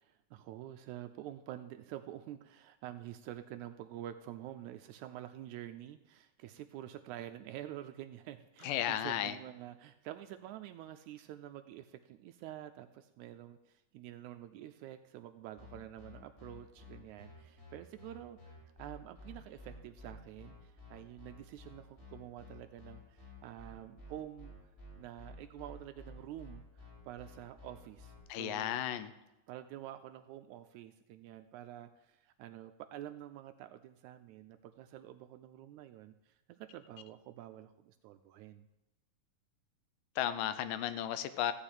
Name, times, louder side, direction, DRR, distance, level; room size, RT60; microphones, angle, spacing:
voice 1, 0.0-24.5 25.0-28.8 29.5-38.7, right 12 dB, 80° right, 9 dB, 1.8 m, -48 dB
voice 2, 8.6-9.4 28.3-29.1 40.2-41.5, left 11 dB, 85° left, 12 dB, 2.3 m, -34 dB
sound 1, 15.6-28.2, left 2 dB, 25° left, 5.9 m, -52 dB
14.5 x 4.9 x 8.8 m, 0.95 s
omnidirectional pair, 3.7 m